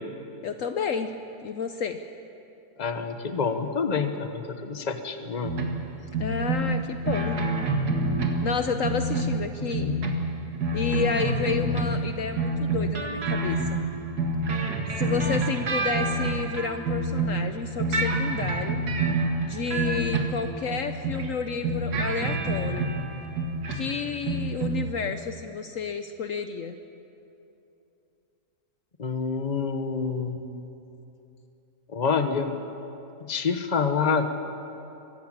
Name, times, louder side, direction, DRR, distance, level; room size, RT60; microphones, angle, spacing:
voice 1, 0.4-1.1 1.4-2.0 6.2-7.4 8.4-9.9 10.7-13.8 14.9-18.8 19.4-22.9 23.7-26.8, left 6 dB, 65° left, 8 dB, 1.1 m, -31 dB
voice 2, 2.8-5.5 9.6-10.0 29.0-30.5 31.9-32.6 33.2-34.5, left 5 dB, 30° left, 8 dB, 1.1 m, -27 dB
sound 1, 5.4-5.8 6.1-8.6 8.8-12.1 12.4-17.5 17.8-21.3 21.6-24.0 24.2-24.9, right 2 dB, 90° right, 2.2 m, -27 dB
23.5 x 14.5 x 8.9 m, 2.9 s
omnidirectional pair, 1.6 m